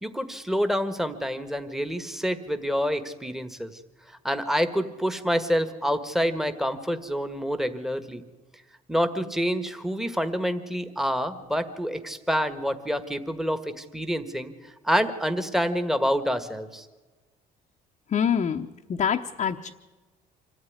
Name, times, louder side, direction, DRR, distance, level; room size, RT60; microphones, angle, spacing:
voice 1, 0.0-3.7 4.2-8.2 8.9-14.5 14.8-16.9, equal, ahead, 9 dB, 1.7 m, -27 dB
voice 2, 18.1-19.7, left 8 dB, 40° left, 2 dB, 1.0 m, -26 dB
25.5 x 14.0 x 9.6 m, 1.3 s
cardioid pair, 110°, 17 cm